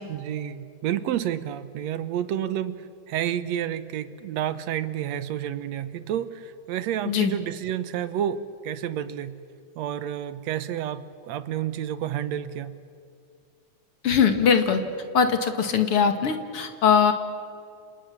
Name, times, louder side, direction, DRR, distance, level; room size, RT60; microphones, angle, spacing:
voice 1, 0.1-9.4 9.8-12.8, right 10 dB, 65° right, 14 dB, 2.0 m, -30 dB
voice 2, 14.0-14.8 15.1-17.1, left 7 dB, 50° left, 7 dB, 2.5 m, -21 dB
30.0 x 27.0 x 7.3 m, 2.4 s
omnidirectional pair, 3.7 m